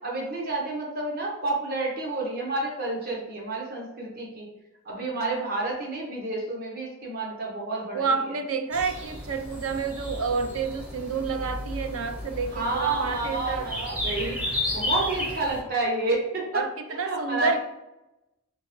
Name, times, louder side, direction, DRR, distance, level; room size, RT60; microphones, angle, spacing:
voice 1, 0.0-4.5 4.8-8.4 12.5-14.4 14.7-16.6 17.0-17.6, right 2 dB, 45° right, -2 dB, 1.0 m, -29 dB
voice 2, 7.9-13.7 16.5-17.6, right 5 dB, 70° right, 8 dB, 0.4 m, -29 dB
sound 1, 8.7-15.6, left 1 dB, 5° right, 0.6 m, -33 dB
3.7 x 3.5 x 3.0 m, 0.96 s
head